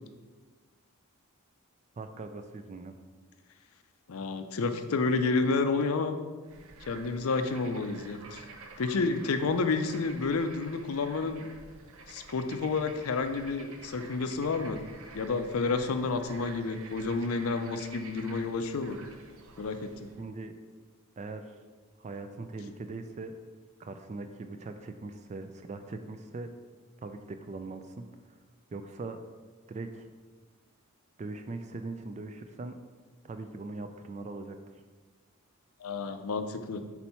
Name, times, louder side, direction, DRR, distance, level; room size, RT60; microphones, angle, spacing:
voice 1, 2.0-2.9 20.2-20.5 21.2-21.5 22.0-23.3 23.8-26.5 27.0-28.1 28.7-29.2 29.7-30.1 31.2-32.8 33.2-34.6, right 3 dB, 30° right, 7 dB, 0.3 m, -40 dB
voice 2, 4.1-6.2 6.9-8.4 8.8-11.4 12.1-14.8 15.1-19.0 19.6-20.1 35.8-36.8, left 4 dB, 75° left, 8 dB, 0.5 m, -30 dB
Bird / Frog, 6.4-20.2, right 3 dB, 70° right, 0.6 m, -50 dB
4.4 x 4.1 x 5.5 m, 1.4 s
head